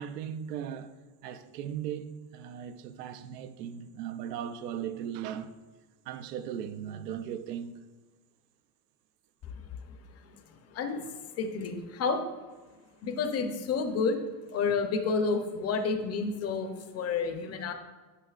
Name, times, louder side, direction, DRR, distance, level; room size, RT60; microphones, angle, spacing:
voice 1, 0.0-5.5 6.1-7.7, right 9 dB, 90° right, 0.6 m, -38 dB
voice 2, 11.4-12.2 13.0-14.2 14.5-17.7, left 4 dB, 35° left, 0.7 m, -30 dB
9.8 x 5.5 x 2.4 m
supercardioid pair, 120°, 46 cm